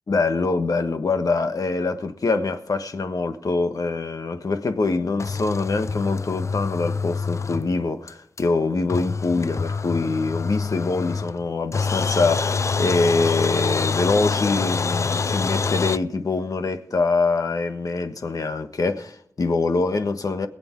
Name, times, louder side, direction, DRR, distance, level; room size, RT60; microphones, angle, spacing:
voice 1, 0.1-20.5, left 3 dB, 70° left, 1.4 m, -24 dB
sound 1, 5.2-7.8 8.1-8.2 8.4-8.5 8.9-11.5 11.7-16.0, left 4 dB, 50° left, 0.4 m, -26 dB
21.5 x 8.1 x 4.6 m
wide cardioid pair, 75°, 6 cm